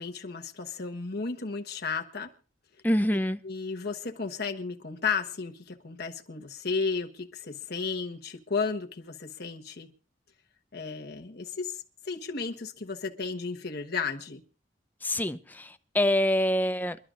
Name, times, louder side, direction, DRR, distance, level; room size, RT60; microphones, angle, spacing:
voice 1, 0.0-2.3 3.4-9.9 10.7-14.4, left 5 dB, 60° left, 1.3 m, -33 dB
voice 2, 2.8-3.4 15.0-17.0, left 1 dB, 10° left, 0.6 m, -26 dB
28.0 x 11.5 x 2.5 m
head